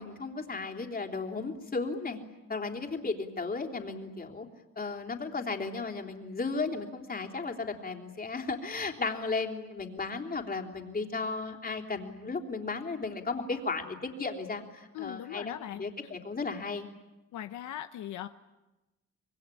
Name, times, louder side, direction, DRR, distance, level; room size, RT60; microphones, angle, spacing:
voice 1, 0.0-2.2 2.5-4.5 4.8-16.9, left 4 dB, 30° left, 4 dB, 3.6 m, -35 dB
voice 2, 14.9-16.1 17.3-18.3, left 11 dB, 75° left, 9 dB, 1.0 m, -40 dB
26.0 x 21.5 x 10.0 m, 1.1 s
cardioid pair, 90°, 30 cm